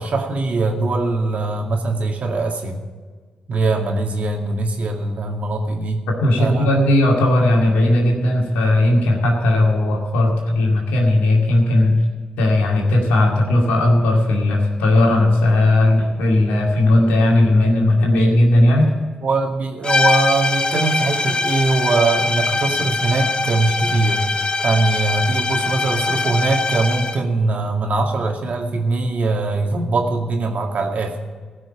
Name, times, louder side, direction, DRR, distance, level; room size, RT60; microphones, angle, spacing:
voice 1, 0.0-2.8 3.5-6.0 6.4-6.7 19.2-24.2 24.6-31.2, right 3 dB, 60° right, 2 dB, 2.1 m, -21 dB
voice 2, 6.1-12.0 12.4-18.9, left 1 dB, 90° left, 0 dB, 2.2 m, -16 dB
sound 1, 19.8-27.3, left 3 dB, 35° left, 0.7 m, -22 dB
16.0 x 6.2 x 8.8 m, 1.5 s
hypercardioid pair, 40°, 3 cm